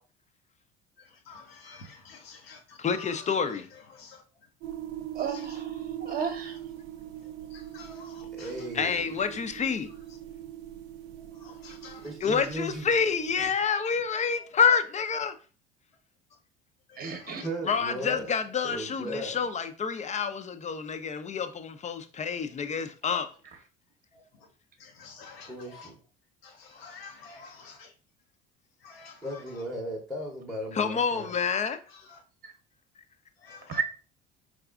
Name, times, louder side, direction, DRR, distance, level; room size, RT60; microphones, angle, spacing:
voice 1, 1.0-4.2 4.6-4.8 5.3-5.6 7.2-8.7 11.2-12.5 14.4-14.5 16.9-17.5 24.1-24.5 24.8-25.9 26.4-27.9 28.8-29.6 31.9-32.2 33.4-33.8, left 4 dB, 80° left, 0.8 m, -50 dB
voice 2, 2.8-3.7 8.7-9.9 12.2-15.3 17.6-23.3 30.7-31.8, left 6 dB, 25° left, 0.5 m, -28 dB
sound 1, 4.6-13.5, right 11 dB, 60° right, 0.5 m, -41 dB
voice 3, 5.1-6.6 17.0-17.4 32.4-32.5 33.7-33.8, right 6 dB, 30° right, 0.9 m, -33 dB
voice 4, 8.3-9.2 12.0-12.9 13.4-13.5 17.4-18.3 18.6-19.4 25.5-26.0 29.2-31.3, right 1 dB, ahead, 0.9 m, -36 dB
4.7 x 3.6 x 2.3 m
figure-of-eight pair, 60°, 30 cm